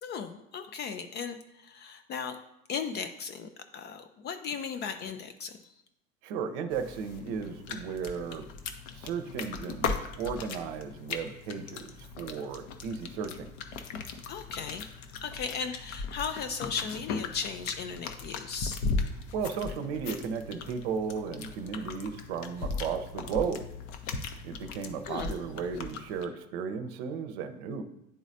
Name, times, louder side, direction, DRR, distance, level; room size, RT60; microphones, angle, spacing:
voice 1, 0.0-2.4 2.7-5.7 14.3-14.9 15.2-18.8 25.1-25.4, left 6 dB, 30° left, 9 dB, 0.4 m, -36 dB
voice 2, 6.2-8.5 8.9-13.5 19.3-23.6 24.4-27.8, right 6 dB, 55° right, 9 dB, 0.7 m, -35 dB
sound 1, 6.7-26.2, left 4 dB, 50° left, 0.8 m, -38 dB
10.5 x 4.0 x 2.6 m, 0.86 s
figure-of-eight pair, 80°, 40 cm